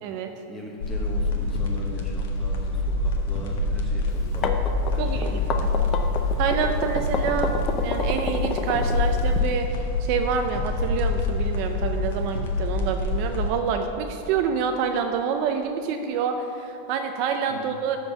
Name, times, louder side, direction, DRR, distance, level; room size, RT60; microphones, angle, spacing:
voice 1, 0.5-5.9 17.5-17.8, equal, 5° left, -2 dB, 1.2 m, -40 dB
sound 1, 0.8-13.5, left 2 dB, 70° left, 1.5 m, -26 dB
sound 2, 4.2-9.4, left 4 dB, 20° left, 0.6 m, -29 dB
voice 2, 5.0-5.4 6.4-7.5 7.8-18.0, right 6 dB, 40° right, 5 dB, 0.5 m, -27 dB
13.0 x 4.5 x 7.0 m, 2.9 s
supercardioid pair, 165°, 0 cm